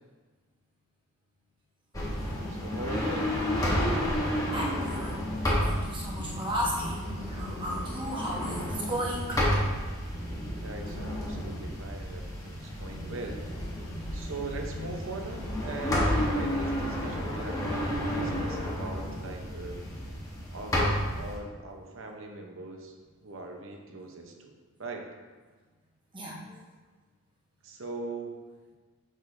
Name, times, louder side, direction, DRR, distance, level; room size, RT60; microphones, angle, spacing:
sound 1, 1.9-21.4, equal, 15° left, 1.1 m, -31 dB
voice 1, 2.5-3.3 10.6-13.5 14.1-19.9 20.5-22.9 23.2-24.5 24.8-25.1 27.6-28.5, right 2 dB, 60° right, 2 dB, 0.8 m, -40 dB
voice 2, 4.5-5.2 5.6-9.4 26.1-26.4, equal, 20° right, -4 dB, 1.1 m, -34 dB
6.7 x 6.2 x 2.6 m, 1.4 s
head